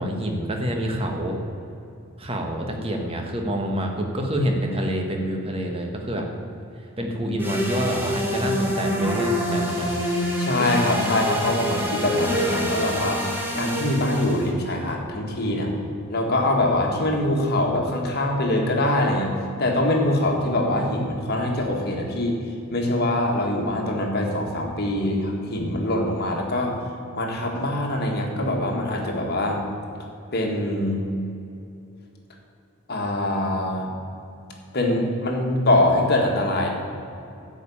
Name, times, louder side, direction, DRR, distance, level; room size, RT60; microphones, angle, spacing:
voice 1, 0.0-1.4 2.2-6.3 7.0-10.0, equal, 25° right, 2 dB, 1.3 m, -27 dB
sound 1, 7.4-14.5, equal, 10° right, 1.5 m, -26 dB
voice 2, 10.4-13.3 13.5-15.7 16.1-19.3 19.6-22.4 22.7-26.7 27.1-29.6 30.3-31.1 32.9-33.9 34.7-36.7, left 1 dB, 45° left, 0 dB, 1.7 m, -23 dB
12.0 x 5.2 x 8.6 m, 2.7 s
head